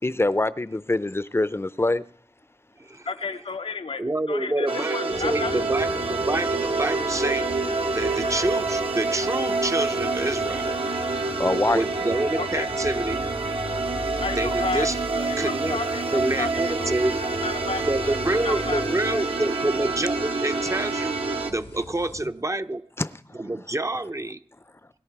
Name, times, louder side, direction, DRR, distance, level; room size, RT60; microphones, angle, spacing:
voice 1, 0.0-2.0 11.4-11.8 23.0-23.4, left 2 dB, 25° left, 0.5 m, -24 dB
voice 2, 3.0-5.6 12.4-12.7 14.2-14.9 15.2-18.2 18.4-19.4, left 3 dB, 70° left, 0.6 m, -32 dB
voice 3, 4.0-7.5 7.9-10.8 11.7-13.3 14.3-15.0 15.4-15.8 16.1-17.2 17.9-22.8 23.4-24.4, right 2 dB, 30° right, 0.6 m, -27 dB
sound 1, 4.7-21.5, right 3 dB, 70° right, 1.1 m, -27 dB
sound 2, 5.1-22.3, left 2 dB, 90° left, 2.0 m, -41 dB
21.0 x 11.0 x 4.7 m
wide cardioid pair, 50°, 10 cm